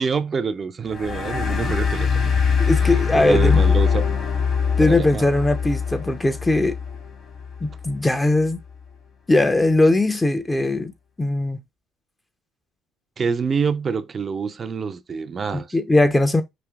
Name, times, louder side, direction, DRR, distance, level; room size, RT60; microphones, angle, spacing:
voice 1, 0.0-2.1 3.1-4.1 4.8-5.3 13.2-15.7, right 5 dB, 40° right, 0.4 m, -26 dB
sound 1, 0.9-8.0, left 6 dB, 50° left, 1.5 m, -22 dB
voice 2, 2.6-3.6 4.8-6.8 7.6-8.6 9.3-10.9 11.2-11.6 15.5-16.4, left 2 dB, 15° left, 0.5 m, -19 dB
5.1 x 2.7 x 2.3 m
hypercardioid pair, 55°, 0 cm